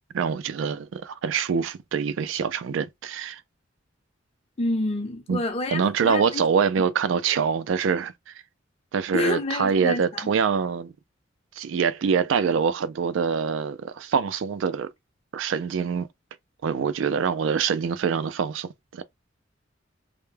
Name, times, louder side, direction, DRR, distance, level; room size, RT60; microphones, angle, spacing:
voice 1, 0.1-3.4 5.3-5.4 5.7-8.3 8.9-10.9 11.6-14.9 15.3-16.1 16.6-19.0, right 6 dB, 75° right, 0.3 m, -25 dB
voice 2, 4.6-6.4 9.1-10.3, left 2 dB, 30° left, 0.6 m, -28 dB
2.1 x 2.1 x 3.2 m
head